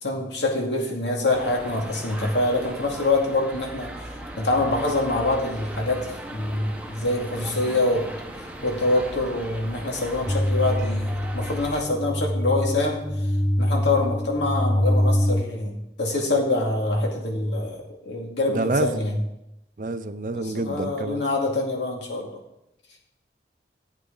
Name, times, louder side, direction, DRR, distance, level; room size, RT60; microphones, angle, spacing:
voice 1, 0.0-3.9 4.4-8.0 8.6-11.1 11.3-13.1 13.6-19.2 20.3-22.3, left 2 dB, 85° left, 0 dB, 2.3 m, -25 dB
sound 1, 1.3-11.8, right 1 dB, 10° right, 0.9 m, -38 dB
sound 2, 10.3-15.4, equal, 10° left, 0.3 m, -24 dB
voice 2, 18.5-18.9 19.8-21.2, right 2 dB, 45° right, 12 dB, 0.5 m, -27 dB
15.0 x 8.2 x 3.9 m, 0.88 s
head